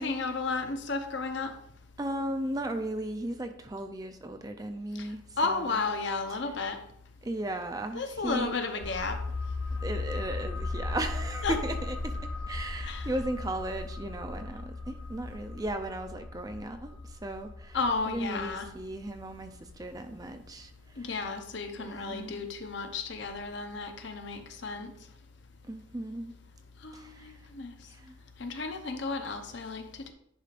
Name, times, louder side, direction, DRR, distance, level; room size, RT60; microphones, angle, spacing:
voice 1, 0.0-1.5 5.0-5.1 5.4-6.8 7.9-9.2 11.4-11.5 12.8-13.1 17.7-18.7 21.0-24.9 26.8-27.7 28.4-30.1, left 3 dB, 60° left, 6 dB, 0.8 m, -33 dB
voice 2, 2.0-5.8 6.3-6.5 7.2-8.5 9.8-12.2 12.5-17.8 18.1-20.7 21.0-21.1 21.8-22.5 25.7-26.3 26.9-27.3 27.9-28.1, right 1 dB, 20° right, 7 dB, 0.4 m, -36 dB
sound 1, 8.8-20.2 20.5-20.6, left 3 dB, 85° left, 1.7 m, -37 dB
10.0 x 5.0 x 2.5 m, 0.71 s
head